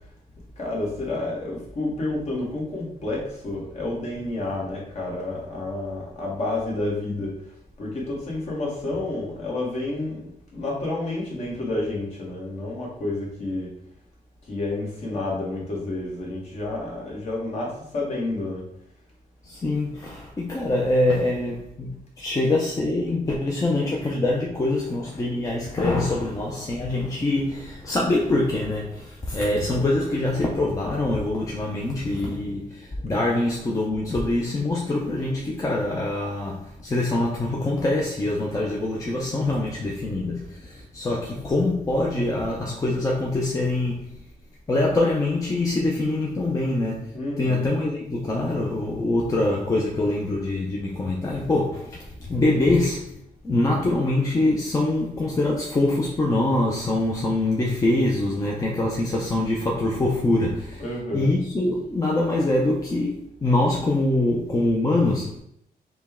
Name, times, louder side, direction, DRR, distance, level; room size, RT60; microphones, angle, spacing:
voice 1, 0.6-13.7 14.4-18.7 47.1-47.8 60.8-61.3, left 2 dB, 45° left, 1.3 m, -30 dB
voice 2, 19.4-44.1 44.7-53.1 53.4-60.8 61.1-65.4, left 2 dB, 20° left, 0.5 m, -24 dB
5.0 x 2.2 x 3.5 m
wide cardioid pair, 155°, 15 cm